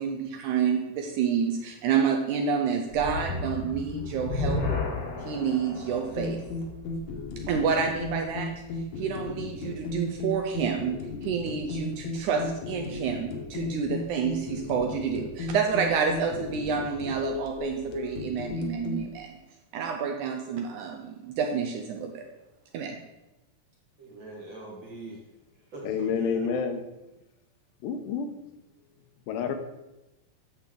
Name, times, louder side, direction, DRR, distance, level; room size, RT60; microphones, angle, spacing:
voice 1, 0.0-4.6 5.2-6.4 7.5-19.4 19.7-22.3 22.7-23.0, right 6 dB, 80° right, 3 dB, 1.8 m, -29 dB
sound 1, 2.9-8.2, left 3 dB, 45° left, 1.2 m, -33 dB
sound 2, 6.2-19.0, left 2 dB, 65° left, 2.1 m, -35 dB
voice 2, 24.0-25.2 25.7-26.5, right 2 dB, 45° right, -4 dB, 1.7 m, -41 dB
voice 3, 25.8-26.8 27.8-28.3 29.3-29.6, left 6 dB, 80° left, 7 dB, 2.4 m, -28 dB
9.5 x 6.7 x 3.7 m, 0.97 s
omnidirectional pair, 4.0 m